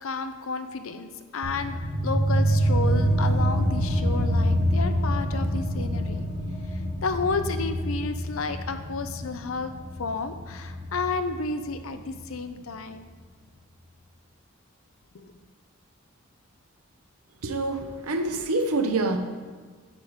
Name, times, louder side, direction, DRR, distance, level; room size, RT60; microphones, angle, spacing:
voice 1, 0.0-1.8 2.0-6.3 7.0-9.7 10.0-13.2 15.1-15.3, left 3 dB, 75° left, 8 dB, 0.6 m, -31 dB
sound 1, 1.4-12.5, equal, 35° right, 1.2 m, -26 dB
voice 2, 17.4-19.2, right 2 dB, 90° right, 6 dB, 0.8 m, -26 dB
9.2 x 4.7 x 4.9 m, 1.5 s
head